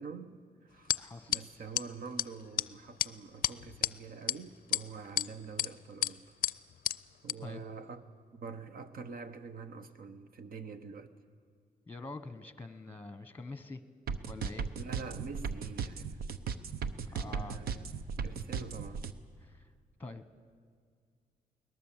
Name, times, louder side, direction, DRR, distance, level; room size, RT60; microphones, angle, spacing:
voice 1, 0.0-0.9 1.3-6.2 7.2-11.1 14.8-16.2 17.2-17.8 18.2-19.0, right 5 dB, 70° right, 1.2 m, -46 dB
sound 1, 0.9-1.0 1.3-1.4 1.8-1.9 2.2-2.3 2.6-2.7 3.0-3.1 3.4-3.9 4.3-4.4 4.7-5.3 5.6-5.7 6.0-6.1 6.4-6.5 6.9-7.0 7.3-7.4, left 11 dB, 65° left, 0.4 m, -30 dB
voice 2, 1.0-1.3 7.4-7.6 11.9-13.8 14.3-14.7 17.1-17.6 19.4-19.7 20.0-20.3, left 2 dB, 10° left, 1.1 m, -45 dB
sound 2, 14.1-19.1, right 6 dB, 85° right, 0.8 m, -36 dB
21.5 x 19.0 x 7.4 m
cardioid pair, 105°, 15 cm